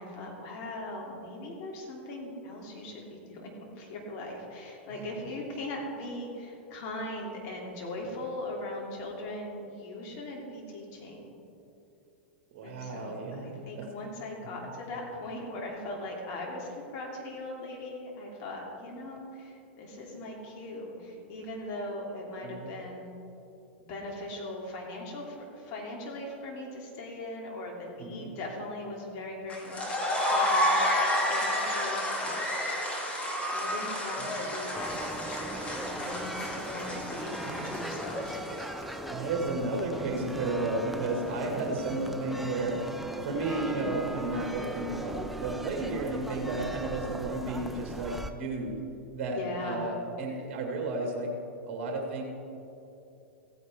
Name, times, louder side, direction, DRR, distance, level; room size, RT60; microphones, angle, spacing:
voice 1, 0.0-11.3 12.6-13.1 13.4-23.1 23.8-32.4 33.5-38.5 49.3-49.8, left 1 dB, 50° left, -1 dB, 2.8 m, -40 dB
voice 2, 12.5-13.9 14.4-14.7 22.4-22.7 28.0-28.3 34.2-34.5 37.4-37.7 39.1-42.9 43.2-48.8 49.1-51.3 51.7-52.2, right 2 dB, 50° right, 1 dB, 1.7 m, -33 dB
sound 1, 29.5-38.8, left 1 dB, 20° left, 2.1 m, -30 dB
sound 2, 34.7-48.3, right 1 dB, ahead, 0.6 m, -38 dB
15.5 x 9.3 x 3.5 m, 2.8 s
hypercardioid pair, 100°, 7 cm